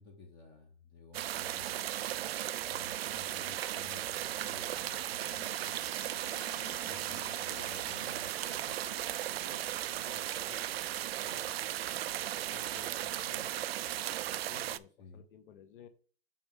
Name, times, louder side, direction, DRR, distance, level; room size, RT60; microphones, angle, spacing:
voice 1, 0.0-2.0 2.7-5.8 6.8-8.3 15.0-15.2, left 4 dB, 15° left, 3 dB, 0.8 m, -54 dB
sound 1, 1.1-14.8, right 13 dB, 75° right, 0.5 m, -36 dB
sound 2, 4.1-9.5, left 7 dB, 85° left, 1.4 m, -54 dB
voice 2, 7.1-8.0 8.5-11.6 12.5-13.6 14.2-15.9, left 7 dB, 55° left, 10 dB, 1.1 m, -56 dB
6.5 x 5.4 x 3.6 m, 0.42 s
hypercardioid pair, 165°, 30 cm